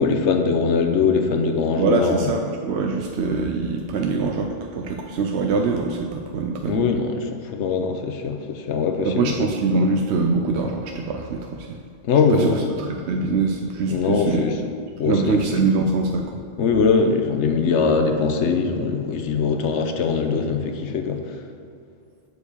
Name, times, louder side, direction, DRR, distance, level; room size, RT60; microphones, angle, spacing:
voice 1, 0.0-2.3 6.7-9.3 12.0-12.7 13.9-14.6 15.0-15.6 16.6-21.2, left 5 dB, 85° left, 5 dB, 1.1 m, -21 dB
voice 2, 1.8-6.9 9.0-11.8 12.3-14.4 15.0-16.4, right 4 dB, 75° right, 3 dB, 0.9 m, -23 dB
7.1 x 4.8 x 6.7 m, 2.4 s
omnidirectional pair, 1.2 m